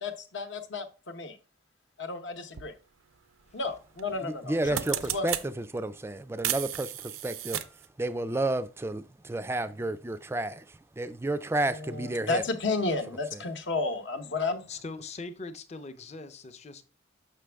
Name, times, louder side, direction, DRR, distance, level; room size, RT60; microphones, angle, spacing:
voice 1, 0.0-1.4 2.0-2.7 3.5-4.8 5.1-5.3 11.7-14.6, left 3 dB, 65° left, 0.9 m, -32 dB
sound 1, 2.5-2.7 4.0-4.2 4.5-5.5 6.4-7.9, right 11 dB, 90° right, 0.5 m, -33 dB
voice 2, 4.2-7.6 8.0-12.4 13.3-13.4, right 2 dB, 10° right, 0.3 m, -31 dB
voice 3, 14.7-16.8, left 3 dB, 35° left, 0.6 m, -41 dB
6.2 x 6.0 x 3.4 m
head